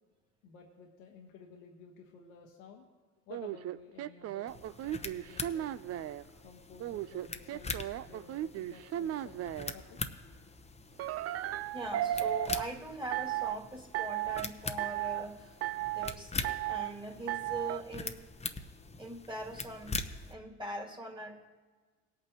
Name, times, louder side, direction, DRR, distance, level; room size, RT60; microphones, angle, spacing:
voice 1, 0.4-2.9 3.3-5.7 6.4-10.1, left 5 dB, 80° left, 0 dB, 1.5 m, -54 dB
sound 1, 3.3-6.2 6.8-9.7 11.0-12.6 13.1-13.6 13.9-14.5 14.8-15.3 15.6-16.1 16.4-16.9 17.3-17.8, right 13 dB, 40° right, 0.5 m, -35 dB
sound 2, 4.5-20.3, left 3 dB, 15° left, 0.9 m, -43 dB
voice 2, 11.7-15.5 15.9-18.2 19.0-20.0 20.3-21.5, right 1 dB, 10° right, 2 dB, 2.1 m, -42 dB
19.0 x 8.6 x 3.0 m, 1.4 s
hypercardioid pair, 70°, 39 cm